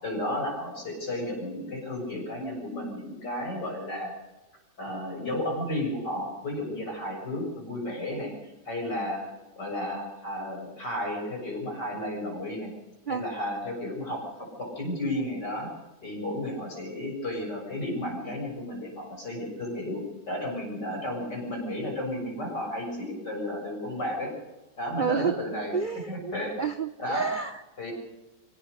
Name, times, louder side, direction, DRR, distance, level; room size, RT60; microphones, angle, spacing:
voice 1, 0.0-4.1 4.8-8.3 8.7-9.3 9.6-12.7 13.1-15.7 16.0-20.0 20.3-24.3 24.8-25.7 26.1-26.6 27.0-27.3 27.8-27.9, left 1 dB, 60° left, 0 dB, 7.6 m, -33 dB
voice 2, 24.9-25.3 25.7-27.6, right 6 dB, 75° right, 10 dB, 0.4 m, -30 dB
24.0 x 16.5 x 6.6 m, 1.1 s
omnidirectional pair, 2.0 m